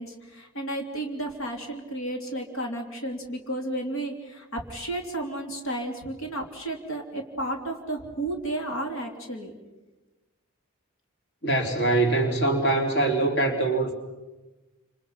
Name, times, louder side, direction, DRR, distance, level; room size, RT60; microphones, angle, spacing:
voice 1, 0.0-9.5, right 1 dB, 65° left, 2 dB, 3.3 m, -32 dB
voice 2, 11.4-13.9, right 2 dB, 50° left, 3 dB, 3.4 m, -23 dB
29.5 x 28.0 x 5.7 m, 1.1 s
head